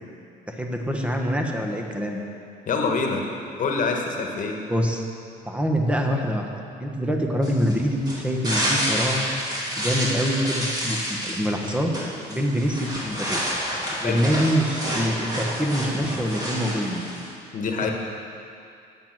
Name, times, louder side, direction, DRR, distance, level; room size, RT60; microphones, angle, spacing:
voice 1, 0.5-2.2 4.7-5.0 5.4-6.5 6.8-9.3 9.8-11.9 12.3-13.4 14.0-17.1, equal, 5° right, 2 dB, 1.2 m, -25 dB
voice 2, 2.7-3.2 3.6-4.6 14.0-14.2 17.5-17.9, left 4 dB, 50° left, 2 dB, 1.4 m, -25 dB
sound 1, 7.4-17.3, equal, 25° right, 2.6 m, -29 dB
8.8 x 8.7 x 6.0 m, 2.5 s
cardioid pair, 110°, 17 cm